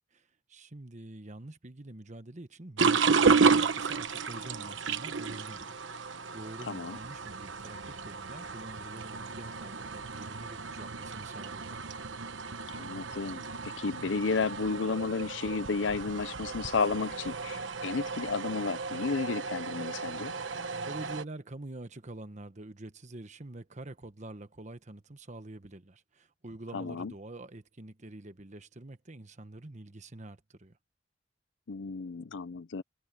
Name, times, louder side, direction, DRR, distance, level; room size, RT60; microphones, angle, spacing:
voice 1, 0.1-11.8 20.9-30.8, right 2 dB, 40° right, 1.2 m, -46 dB
sound 1, 2.8-21.2, right 5 dB, 80° right, 1.1 m, -32 dB
voice 2, 6.7-7.0 12.7-20.3 26.7-27.1 31.7-32.8, left 4 dB, 75° left, 0.6 m, -32 dB
head